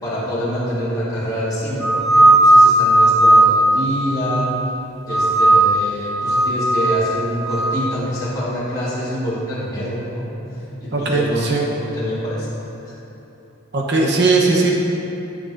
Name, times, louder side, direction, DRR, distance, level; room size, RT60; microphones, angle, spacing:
voice 1, 0.0-4.5 5.1-10.3 10.8-12.5 12.8-12.9, equal, 15° left, -10 dB, 1.6 m, -25 dB
sound 1, 1.8-4.7 5.1-5.9 6.2-7.8, right 1 dB, ahead, 0.4 m, -15 dB
voice 2, 10.9-11.6 13.7-14.7, right 3 dB, 50° right, -1 dB, 1.0 m, -18 dB
12.5 x 6.3 x 2.7 m, 3.0 s
head